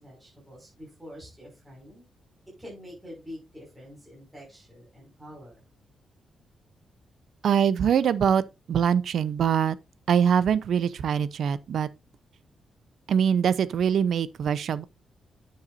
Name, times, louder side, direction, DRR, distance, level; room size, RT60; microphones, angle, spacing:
voice 1, 0.0-2.1 2.6-5.6, equal, 5° right, 5.7 m, -46 dB
voice 2, 7.4-8.4 8.7-9.8 10.1-11.9 13.1-14.8, right 8 dB, 65° right, 0.7 m, -23 dB
9.8 x 7.8 x 2.6 m
wide cardioid pair, 165°, 0 cm